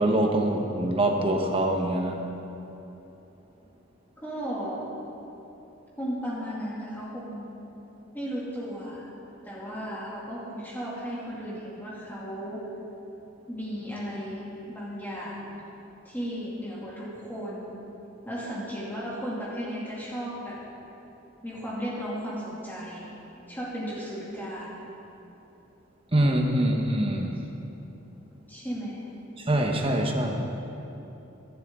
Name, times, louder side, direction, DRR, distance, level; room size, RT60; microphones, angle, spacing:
voice 1, 0.0-2.2 26.1-27.3 29.5-30.5, right 1 dB, 25° right, 2 dB, 1.3 m, -24 dB
voice 2, 4.2-4.9 6.0-7.5 8.1-9.0 9.4-12.7 13.5-15.4 16.0-17.8 18.2-20.6 21.4-23.1 23.5-24.8 28.5-29.0, equal, 10° left, -7 dB, 2.6 m, -35 dB
22.0 x 12.0 x 3.8 m, 3.0 s
head